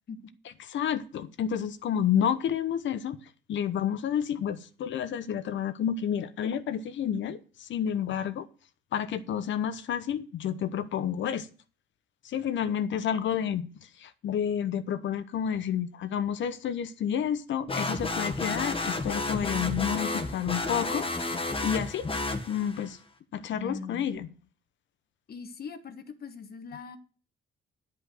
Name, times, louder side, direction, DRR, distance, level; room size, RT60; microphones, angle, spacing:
voice 1, 0.6-3.2 3.5-8.5 8.9-11.5 12.2-21.1 21.3-22.1 22.5-23.0 23.3-24.3, left 9 dB, 70° left, 1.0 m, -30 dB
sound 1, 17.7-22.9, left 2 dB, 25° left, 1.5 m, -31 dB
voice 2, 23.5-24.1 25.3-27.0, left 4 dB, 50° left, 1.4 m, -41 dB
9.9 x 5.5 x 7.6 m
cardioid pair, 90°, 20 cm